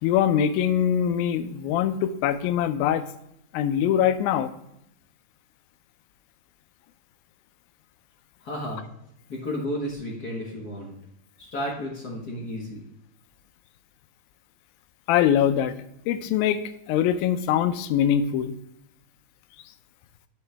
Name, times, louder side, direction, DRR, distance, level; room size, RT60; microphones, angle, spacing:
voice 1, 0.0-3.1 3.5-4.5 15.1-15.8 16.1-16.6 16.9-18.5, left 9 dB, 90° left, 11 dB, 2.4 m, -23 dB
voice 2, 8.4-8.8 9.3-11.0 11.4-12.8, equal, 65° left, -2 dB, 0.9 m, -32 dB
12.0 x 4.8 x 3.3 m, 0.79 s
omnidirectional pair, 4.1 m